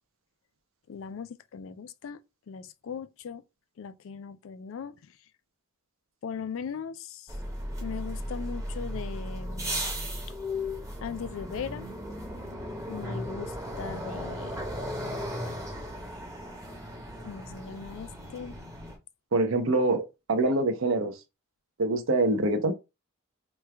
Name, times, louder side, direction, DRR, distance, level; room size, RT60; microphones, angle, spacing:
voice 1, 0.9-2.2 2.5-3.4 3.8-4.9 6.2-7.3 7.8-9.7 11.0-11.8 12.9-13.5 13.8-14.6 17.2-18.6, left 6 dB, 65° left, 0.3 m, -38 dB
sound 1, 7.3-19.0, equal, 15° right, 0.8 m, -36 dB
voice 2, 19.3-21.1 21.8-22.7, right 2 dB, 65° right, 0.6 m, -25 dB
3.1 x 2.3 x 3.3 m
head